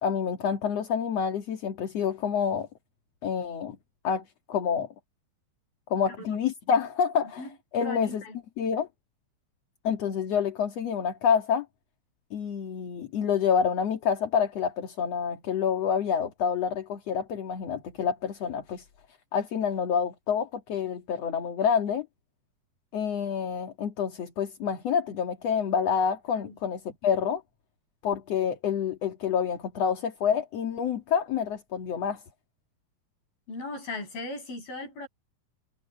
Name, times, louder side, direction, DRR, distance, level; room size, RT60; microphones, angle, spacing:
voice 1, 0.0-2.7 3.2-3.8 4.0-4.9 5.9-7.5 7.7-8.2 8.6-8.9 9.8-11.7 12.3-18.8 19.3-22.1 22.9-27.4 28.0-32.2, left 7 dB, 50° left, 2.7 m, -28 dB
voice 2, 6.1-6.4 7.4-7.5 7.8-8.4 26.3-26.5 33.5-35.1, left 2 dB, 90° left, 9.6 m, -38 dB
omnidirectional pair, 4.1 m